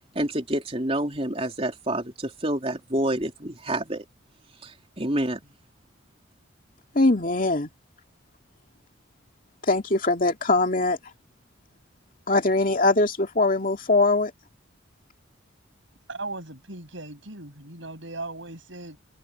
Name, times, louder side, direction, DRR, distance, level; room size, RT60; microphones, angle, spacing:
voice 1, 0.2-4.0 4.6-5.4, right 1 dB, 30° right, 3.6 m, -28 dB
voice 2, 6.9-7.7 9.7-11.0 12.3-14.3, left 2 dB, 40° left, 2.6 m, -21 dB
voice 3, 16.1-19.0, right 2 dB, 65° right, 7.3 m, -38 dB
head